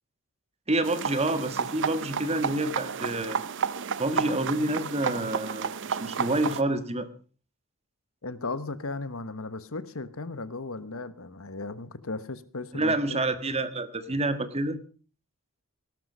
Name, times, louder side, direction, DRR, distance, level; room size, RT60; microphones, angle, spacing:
voice 1, 0.7-3.4 4.0-7.1 12.7-14.8, right 2 dB, 30° right, 11 dB, 1.5 m, -28 dB
sound 1, 0.8-6.6, right 6 dB, 55° right, 0.7 m, -32 dB
voice 2, 8.2-13.2, left 3 dB, 65° left, 14 dB, 1.2 m, -36 dB
18.0 x 12.5 x 5.5 m, 0.40 s
head